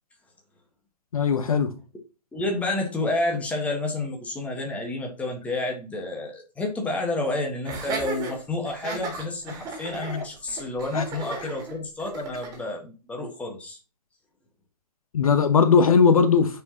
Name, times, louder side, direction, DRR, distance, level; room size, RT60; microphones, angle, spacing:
voice 1, 1.1-1.7 10.9-11.0 15.1-16.6, left 5 dB, 55° left, 1.0 m, -19 dB
voice 2, 2.3-13.8, left 2 dB, 5° left, 1.4 m, -30 dB
Laughter, 7.6-12.6, right 3 dB, 15° right, 2.3 m, -35 dB
9.5 x 4.8 x 2.9 m
figure-of-eight pair, 125°, 21 cm